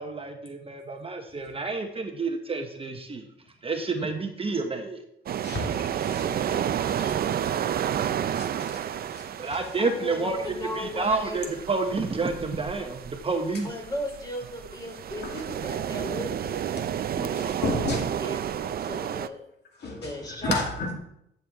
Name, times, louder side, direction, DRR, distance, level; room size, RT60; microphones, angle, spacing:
voice 1, 0.0-3.2 3.6-5.0 9.4-10.4 10.7-13.7 17.2-17.5, right 3 dB, 30° right, 1.0 m, -29 dB
sound 1, 5.3-19.3, right 9 dB, 50° right, 0.5 m, -31 dB
voice 2, 5.4-9.6 15.2-15.4 17.3-18.1 19.8-20.1 20.4-20.9, left 3 dB, 55° left, 2.5 m, -34 dB
voice 3, 6.2-6.6 9.8-11.5 13.6-16.8 17.3-17.9 18.2-19.4 20.0-20.6, left 1 dB, 20° left, 3.3 m, -36 dB
12.0 x 7.0 x 3.5 m
cardioid pair, 90°, 20 cm